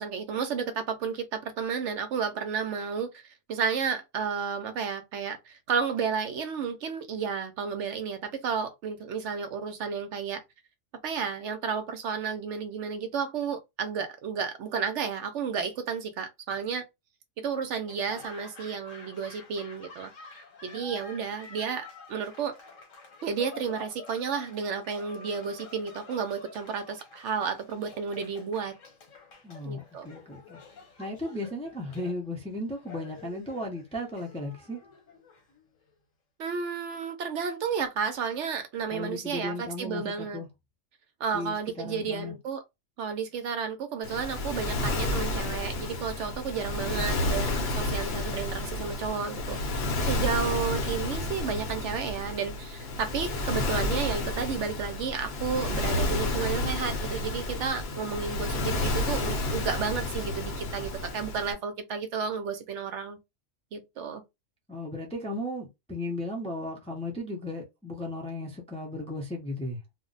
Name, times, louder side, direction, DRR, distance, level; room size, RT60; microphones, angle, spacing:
voice 1, 0.0-3.2 3.5-10.4 11.0-16.8 17.4-20.1 20.6-22.5 23.2-28.7 29.6-30.1 36.4-40.4 41.2-42.6 43.0-49.6 50.1-63.2 63.7-64.2, right 6 dB, 70° right, 0.8 m, -32 dB
Laughter / Applause, 17.8-35.9, left 4 dB, 75° left, 1.3 m, -49 dB
voice 2, 29.4-30.6 31.0-34.8 38.9-40.5 41.3-42.4 64.7-69.8, left 1 dB, 10° left, 0.4 m, -35 dB
Waves surf, 44.0-61.5, left 2 dB, 55° left, 0.9 m, -31 dB
2.5 x 2.1 x 3.8 m
omnidirectional pair, 1.4 m